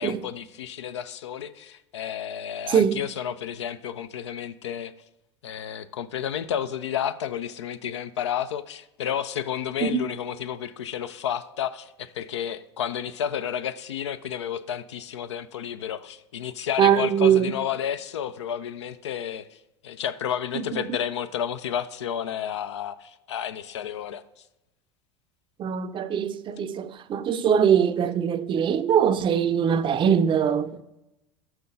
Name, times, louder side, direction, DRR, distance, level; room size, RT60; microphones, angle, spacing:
voice 1, 0.0-4.9 5.4-19.6 19.8-24.2, left 9 dB, 80° left, 0.4 m, -31 dB
voice 2, 2.7-3.0 9.8-10.1 16.8-17.6 20.5-20.8 25.6-30.8, right 8 dB, 35° right, 0.5 m, -22 dB
5.8 x 5.7 x 3.8 m
hypercardioid pair, 75°, 15 cm